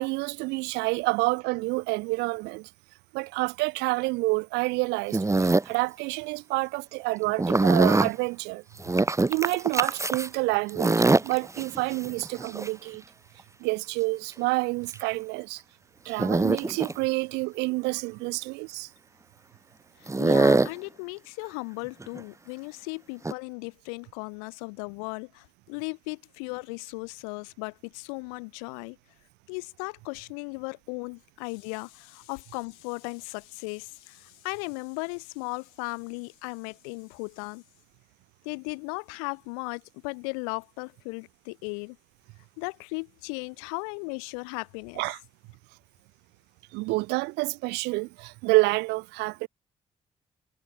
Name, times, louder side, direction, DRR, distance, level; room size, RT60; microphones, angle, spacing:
voice 1, 0.0-2.7 3.1-8.6 9.3-13.0 13.6-15.6 16.0-18.9 45.0-45.2 46.7-49.5, right 24 dB, 75° right, 1.3 m, -28 dB
sound 1, 5.1-5.7 7.4-8.1 8.8-10.3 10.7-12.7 14.9-15.0 16.2-16.9 20.1-20.7 22.0-22.2 23.2-23.3, right 3 dB, 15° right, 1.0 m, -23 dB
voice 2, 20.0-29.0 29.5-37.6 38.4-42.0 42.6-45.0, left 38 dB, 80° left, 1.5 m, -36 dB
hypercardioid pair, 40°, 18 cm